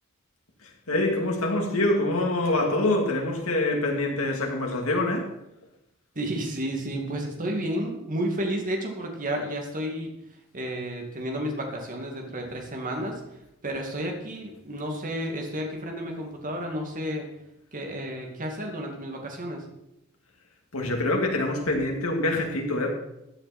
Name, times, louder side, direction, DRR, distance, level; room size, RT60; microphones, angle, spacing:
voice 1, 0.6-5.3 20.7-22.9, left 2 dB, 80° left, 1 dB, 2.6 m, -25 dB
voice 2, 6.2-10.1 10.5-13.2 13.6-17.3 17.7-19.6, right 1 dB, 40° right, 2 dB, 2.4 m, -31 dB
15.0 x 9.9 x 4.4 m, 0.84 s
head